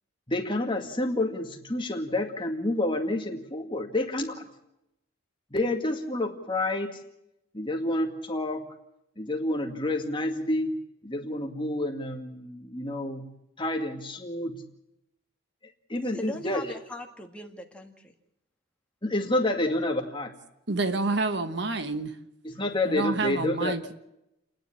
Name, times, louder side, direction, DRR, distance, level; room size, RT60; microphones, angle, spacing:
voice 1, 0.3-4.5 5.5-7.0 7.5-8.7 9.2-13.3 13.6-14.6 15.9-16.7 19.0-20.4 22.4-23.9, left 1 dB, 25° left, 2.1 m, -29 dB
voice 2, 16.0-18.1, left 1 dB, 5° left, 1.8 m, -40 dB
voice 3, 20.7-22.1 22.8-23.9, right 3 dB, 55° right, 1.2 m, -28 dB
29.5 x 10.5 x 8.7 m
head